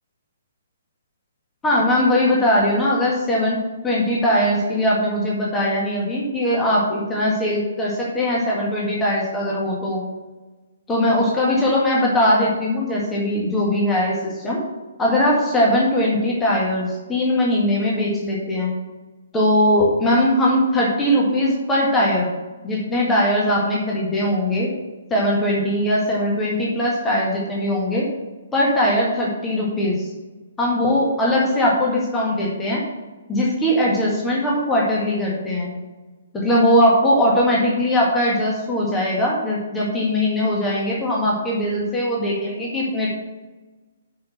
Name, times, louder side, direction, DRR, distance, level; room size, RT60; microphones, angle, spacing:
voice 1, 1.6-3.6 3.8-10.0 10.9-14.6 15.0-18.7 19.3-22.3 22.6-24.7 25.1-28.1 28.5-30.1 30.6-32.8 33.3-35.7 36.3-43.1, left 1 dB, 10° left, -5 dB, 1.9 m, -20 dB
6.3 x 6.2 x 6.1 m, 1.2 s
figure-of-eight pair, 130°, 0 cm